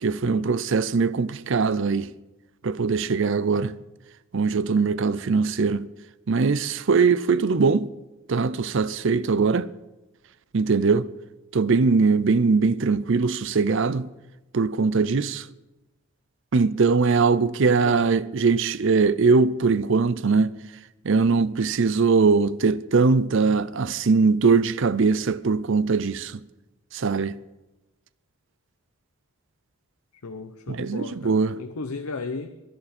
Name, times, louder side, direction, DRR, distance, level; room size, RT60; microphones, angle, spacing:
voice 1, 0.0-2.1 2.6-3.7 4.3-5.9 6.3-7.9 8.3-9.7 10.5-11.1 11.5-14.1 14.5-15.5 16.5-20.5 21.0-26.4 26.9-27.4 30.7-31.6, right 4 dB, 55° right, 0.5 m, -21 dB
voice 2, 17.6-18.1 30.2-32.5, left 4 dB, 85° left, 0.8 m, -35 dB
21.5 x 11.5 x 4.3 m
head